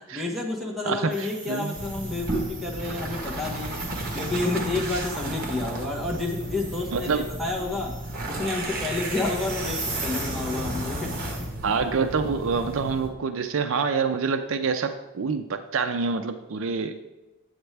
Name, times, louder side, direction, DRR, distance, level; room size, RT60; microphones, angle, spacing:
voice 1, 0.1-7.9 8.3-11.5, left 3 dB, ahead, -3 dB, 1.2 m, -30 dB
voice 2, 0.9-1.7 6.9-7.3 11.6-16.9, right 5 dB, 65° right, 8 dB, 0.5 m, -26 dB
sound 1, 1.1-11.5, right 1 dB, 20° right, 2.6 m, -38 dB
sound 2, 1.7-13.1, right 2 dB, 45° right, 1.3 m, -33 dB
8.0 x 7.9 x 3.3 m, 1.1 s
head